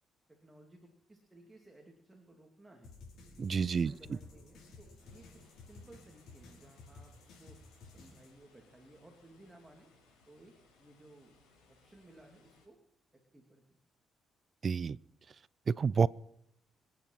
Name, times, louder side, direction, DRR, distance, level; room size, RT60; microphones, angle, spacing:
voice 1, 0.3-2.9 3.7-7.6 7.9-9.9 10.3-11.3 11.7-12.8 13.1-13.6, right 1 dB, 15° right, 1 dB, 2.8 m, -59 dB
sound 1, 2.8-8.3, left 3 dB, 75° left, 5.5 m, -55 dB
voice 2, 3.4-3.9 14.6-15.0 15.7-16.1, right 5 dB, 45° right, 22 dB, 0.5 m, -29 dB
sound 2, 5.0-12.7, left 3 dB, 90° left, 5.7 m, -66 dB
25.0 x 9.7 x 5.8 m, 0.75 s
cardioid pair, 90°, 0 cm